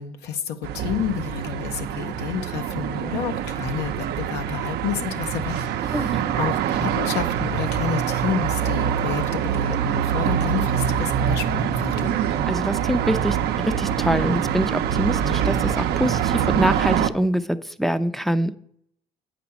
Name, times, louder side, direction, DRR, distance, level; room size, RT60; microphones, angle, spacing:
voice 1, 0.0-12.2, left 8 dB, 85° left, 7 dB, 0.8 m, -30 dB
sound 1, 0.6-17.1, right 9 dB, 75° right, 0.6 m, -24 dB
voice 2, 12.5-13.4 13.6-18.5, equal, ahead, 13 dB, 0.5 m, -24 dB
8.6 x 5.1 x 7.0 m, 0.68 s
cardioid pair, 110°, 17 cm